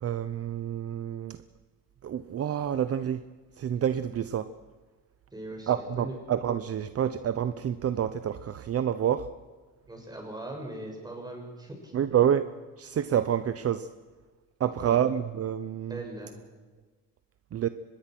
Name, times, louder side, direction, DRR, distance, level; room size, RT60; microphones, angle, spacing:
voice 1, 0.0-1.4 2.0-3.3 3.6-4.5 5.7-9.3 11.9-12.5 12.8-13.9 14.6-16.0 17.5-17.7, right 9 dB, 45° right, 12 dB, 0.8 m, -28 dB
voice 2, 5.3-6.2 9.9-12.3 14.6-15.0 15.9-16.4, right 1 dB, 10° right, 1 dB, 6.4 m, -40 dB
24.5 x 20.5 x 6.1 m, 1.3 s
cardioid pair, 135°, 34 cm